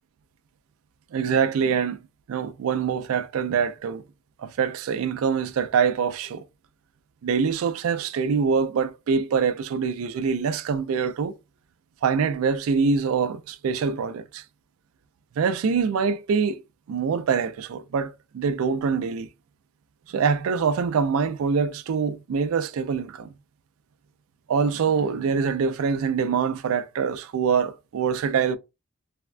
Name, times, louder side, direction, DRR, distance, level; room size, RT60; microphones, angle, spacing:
voice 1, 1.1-2.0 2.3-4.0 4.4-6.4 7.2-11.3 12.0-14.4 15.4-16.6 16.9-19.3 20.1-23.3 24.5-28.6, right 6 dB, 80° right, 0.3 m, -24 dB
3.3 x 2.1 x 2.4 m
head